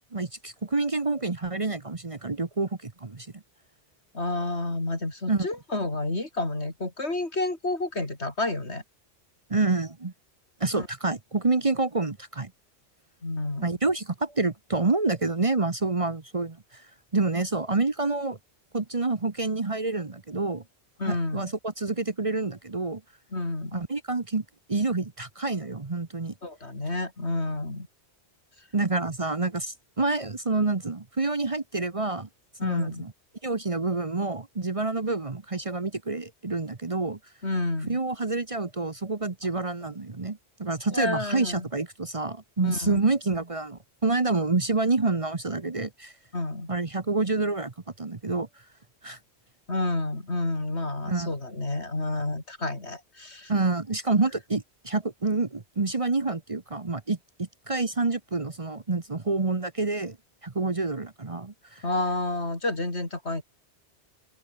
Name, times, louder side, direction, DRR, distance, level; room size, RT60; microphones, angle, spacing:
voice 1, 0.0-3.4 5.3-5.5 9.5-10.1 10.6-12.5 13.6-16.8 17.1-18.4 18.7-20.6 21.0-23.0 23.7-24.4 24.7-26.3 28.7-32.3 32.6-33.1 33.4-37.2 37.9-46.1 46.7-48.5 49.0-49.2 51.1-51.3 53.5-60.2 60.4-61.8, right 3 dB, 30° right, 1.2 m, -28 dB
voice 2, 4.1-8.8 10.8-10.9 13.2-13.7 21.0-21.5 23.3-23.8 26.4-27.9 32.6-33.1 37.4-38.0 39.8-39.9 40.9-41.7 42.6-43.0 46.3-46.7 49.7-53.5 61.8-63.4, left 2 dB, 75° left, 4.7 m, -30 dB
open air
omnidirectional pair, 1.1 m